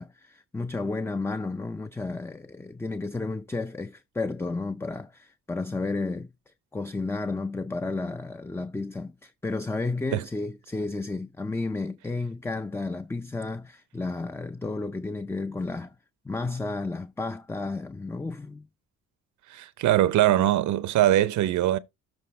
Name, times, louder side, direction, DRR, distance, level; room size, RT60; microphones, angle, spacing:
voice 1, 0.0-16.0 16.2-18.7, left 3 dB, 10° left, 0.5 m, -32 dB
voice 2, 19.5-21.8, right 13 dB, 75° right, 0.7 m, -22 dB
12.5 x 4.5 x 3.2 m
cardioid pair, 90°, 30 cm